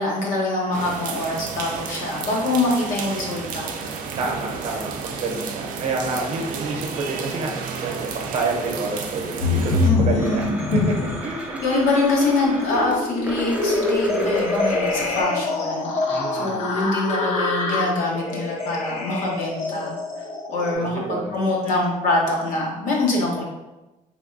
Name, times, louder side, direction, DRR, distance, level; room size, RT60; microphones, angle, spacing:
voice 1, 0.0-3.7 9.8-10.6 11.6-15.9 16.3-19.9 20.5-23.4, left 2 dB, 80° left, -2 dB, 0.9 m, -24 dB
sound 1, 0.7-9.9, right 5 dB, 80° right, 0.4 m, -32 dB
voice 2, 4.2-10.8 11.2-11.6 16.1-16.7 20.7-21.3, right 3 dB, 50° right, 1 dB, 0.7 m, -29 dB
sound 2, 9.4-11.3 11.7-20.7, left 3 dB, 60° left, 0.5 m, -25 dB
Domestic sounds home sounds, 10.2-15.2, right 1 dB, 10° right, 0.4 m, -35 dB
3.4 x 3.2 x 2.5 m, 1.0 s
cardioid pair, 155°, 14 cm